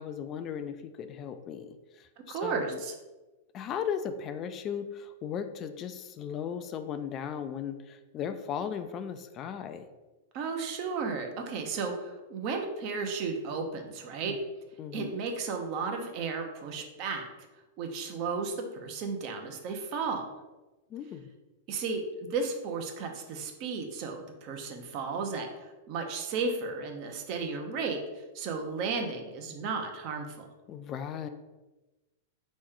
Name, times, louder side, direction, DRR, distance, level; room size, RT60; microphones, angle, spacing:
voice 1, 0.0-2.7 3.5-9.9 14.8-15.1 20.9-21.3 30.7-31.3, left 8 dB, 35° left, 9 dB, 0.3 m, -37 dB
voice 2, 2.3-2.9 10.3-14.4 14.9-17.2 17.8-20.3 21.7-28.0 28.3-30.4, right 4 dB, 45° right, 4 dB, 0.8 m, -34 dB
4.2 x 3.1 x 3.7 m, 1.1 s
hypercardioid pair, 120°, 0 cm